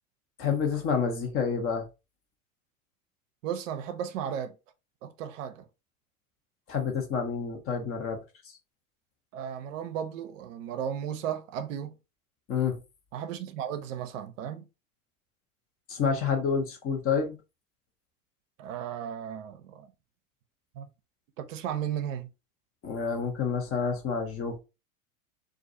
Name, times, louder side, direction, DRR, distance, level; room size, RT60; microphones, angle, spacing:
voice 1, 0.4-1.9 6.7-8.2 12.5-12.8 15.9-17.3 22.8-24.6, left 6 dB, 30° left, 0.8 m, -28 dB
voice 2, 3.4-4.5 5.0-5.7 9.3-12.0 13.1-14.7 18.6-19.9 20.8-20.9 21.4-22.3, right 9 dB, 65° right, 0.5 m, -35 dB
2.4 x 2.2 x 2.6 m
hypercardioid pair, 90°, 42 cm